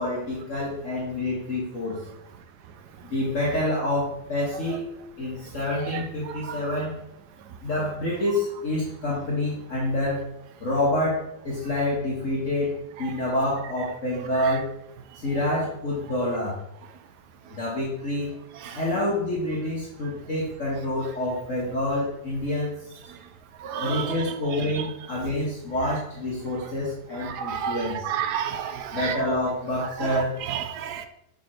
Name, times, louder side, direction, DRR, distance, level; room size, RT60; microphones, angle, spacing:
voice 1, 0.0-2.0 3.0-7.0 7.6-10.3 10.6-14.7 15.2-16.6 17.5-18.3 18.7-22.9 23.8-28.1 28.9-30.4, left 1 dB, 45° left, 1.7 m, -27 dB
voice 2, 23.6-24.1 27.3-29.2 30.0-30.2 30.5-31.1, right 8 dB, 70° right, 1.1 m, -30 dB
7.3 x 4.3 x 4.4 m
omnidirectional pair, 2.0 m